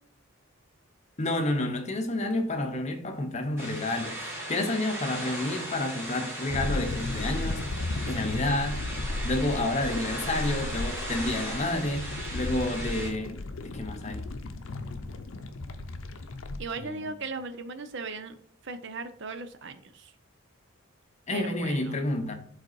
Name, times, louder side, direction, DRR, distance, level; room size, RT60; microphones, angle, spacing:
voice 1, 1.2-7.7 8.1-8.9 9.2-13.3 13.6-14.3 16.8-17.1 21.3-22.3, left 2 dB, 35° left, 0.8 m, -30 dB
sound 1, 3.6-13.1, right 1 dB, 10° right, 2.1 m, -38 dB
sound 2, 6.5-16.6, left 2 dB, 70° left, 0.6 m, -34 dB
voice 2, 16.6-18.4 18.6-20.1 21.3-22.0, right 3 dB, 55° right, 0.7 m, -38 dB
5.2 x 4.1 x 4.6 m
head